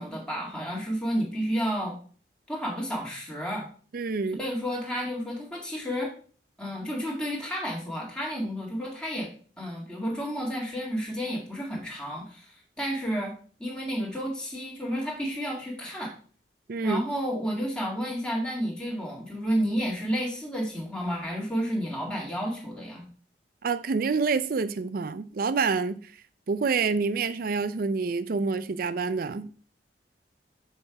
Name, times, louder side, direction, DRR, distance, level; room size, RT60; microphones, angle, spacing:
voice 1, 0.0-2.0 2.5-3.7 4.4-6.1 6.6-16.1 16.8-23.1, equal, 5° left, 1.8 m, -31 dB
voice 2, 3.9-4.4 16.7-17.0 23.6-26.0 26.5-29.5, right 4 dB, 55° right, 0.4 m, -27 dB
6.4 x 5.4 x 4.6 m
head